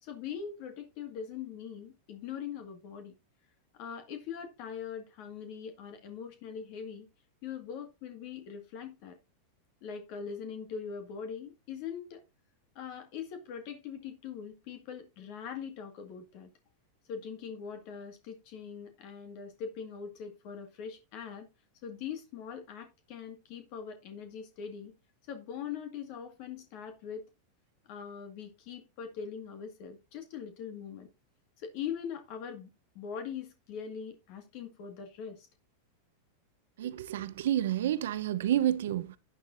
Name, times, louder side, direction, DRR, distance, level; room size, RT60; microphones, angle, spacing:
voice 1, 0.0-3.1 3.7-7.1 7.4-9.2 9.8-12.2 12.8-16.5 17.1-21.5 21.8-24.9 25.3-27.2 27.8-31.1 31.6-32.7 33.0-35.5, left 7 dB, 55° left, 2.1 m, -42 dB
voice 2, 36.8-39.2, right 11 dB, 75° right, 0.9 m, -29 dB
11.0 x 9.4 x 2.7 m
hypercardioid pair, 110°, 0 cm